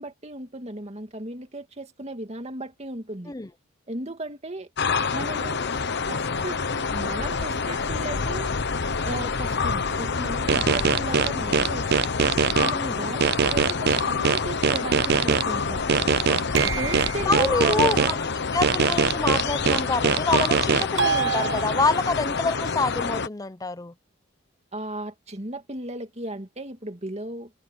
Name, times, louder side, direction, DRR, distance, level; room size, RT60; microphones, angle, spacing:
voice 1, 0.0-3.3 3.9-4.7 5.1-5.7 6.1-6.6 6.9-8.5 9.1-12.1 12.6-15.9 16.7-18.2 24.7-27.5, right 2 dB, 30° right, 2.2 m, -35 dB
sound 1, 4.8-23.3, left 5 dB, 60° left, 1.0 m, -28 dB
sound 2, 10.5-12.7 13.2-15.4 15.9-18.1 18.6-20.8, right 7 dB, 55° right, 0.4 m, -21 dB
voice 2, 10.6-10.9 12.7-13.1 16.5-16.8 17.3-18.2 18.5-23.9, left 3 dB, 20° left, 0.6 m, -27 dB
sound 3, 16.6-17.5 21.0-22.2, right 7 dB, 70° right, 1.5 m, -28 dB
head